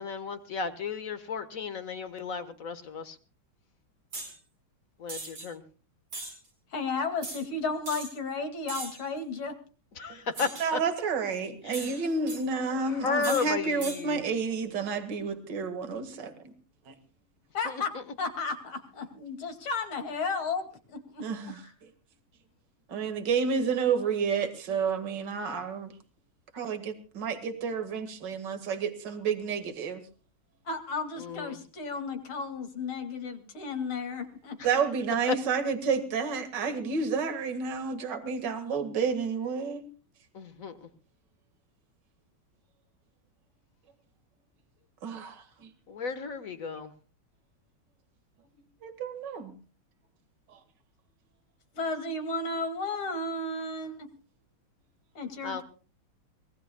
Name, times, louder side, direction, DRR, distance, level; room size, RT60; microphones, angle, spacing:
voice 1, 0.0-3.2 5.0-5.6 10.0-10.8 11.7-11.9 12.8-14.2 17.6-17.7 31.2-31.6 40.3-40.9 45.9-46.9 55.4-55.6, left 5 dB, 45° left, 10 dB, 1.6 m, -34 dB
sound 1, 4.1-4.3 5.1-5.5 6.1-6.3 7.2-7.4 7.8-8.1 8.7-9.0 10.3-10.7 11.7-12.4 13.2-13.5 13.8-14.0, right 2 dB, 80° right, 5.8 m, -39 dB
voice 2, 6.7-9.6 17.5-21.7 30.6-34.6 51.7-54.0 55.1-55.6, left 3 dB, 85° left, 6 dB, 3.2 m, -33 dB
voice 3, 10.6-16.5 16.9-17.0 21.2-21.6 22.9-25.9 26.5-30.0 34.6-39.9 45.0-45.7 48.8-49.5 50.5-50.6, right 5 dB, 60° right, 8 dB, 2.5 m, -30 dB
24.5 x 19.0 x 2.3 m, 0.36 s
omnidirectional pair, 2.3 m